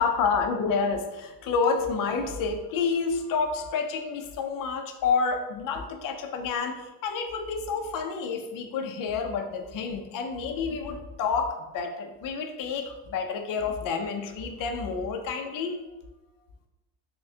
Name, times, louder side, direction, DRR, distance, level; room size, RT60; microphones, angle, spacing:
voice 1, 0.0-15.7, left 5 dB, 45° left, 4 dB, 0.5 m, -29 dB
5.8 x 2.1 x 2.7 m, 1.1 s
cardioid pair, 135°, 46 cm